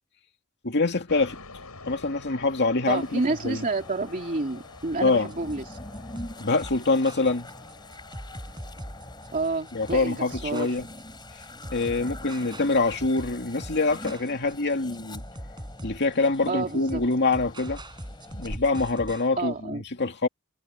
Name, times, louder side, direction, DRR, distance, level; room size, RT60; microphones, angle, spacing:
voice 1, 0.6-1.4 1.9-3.6 5.0-5.3 6.4-7.5 9.7-10.9 11.7-15.2 15.8-17.8 18.3-20.3, left 3 dB, 50° left, 2.4 m, -25 dB
sound 1, 1.1-19.6, left 3 dB, 80° left, 6.8 m, -51 dB
sound 2, 2.8-18.6, left 1 dB, 20° left, 5.0 m, -44 dB
voice 2, 2.9-5.8 9.3-10.8 16.5-17.0 19.4-19.8, right 3 dB, 35° right, 2.7 m, -29 dB
sound 3, 5.3-19.3, right 1 dB, 20° right, 6.1 m, -42 dB
head